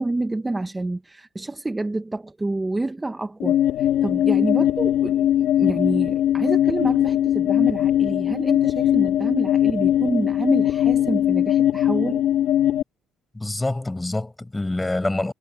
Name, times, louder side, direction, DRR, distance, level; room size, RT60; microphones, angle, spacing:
voice 1, 0.0-12.2, right 2 dB, 15° right, 1.1 m, -28 dB
sound 1, 3.4-12.8, left 11 dB, 70° left, 2.0 m, -20 dB
voice 2, 13.3-15.3, left 2 dB, 10° left, 6.2 m, -26 dB
cardioid pair, 115°, 0 cm